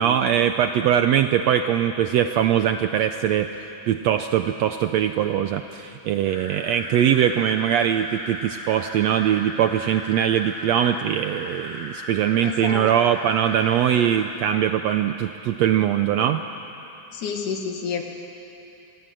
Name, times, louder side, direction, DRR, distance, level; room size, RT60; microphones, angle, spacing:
voice 1, 0.0-3.5 3.9-16.4, right 10 dB, 75° right, 8 dB, 1.6 m, -21 dB
sound 1, 6.3-14.1, equal, 35° left, 7.3 m, -37 dB
voice 2, 12.4-12.9 17.1-18.0, left 6 dB, 75° left, 3 dB, 3.4 m, -29 dB
27.0 x 22.5 x 7.6 m, 2.9 s
omnidirectional pair, 3.7 m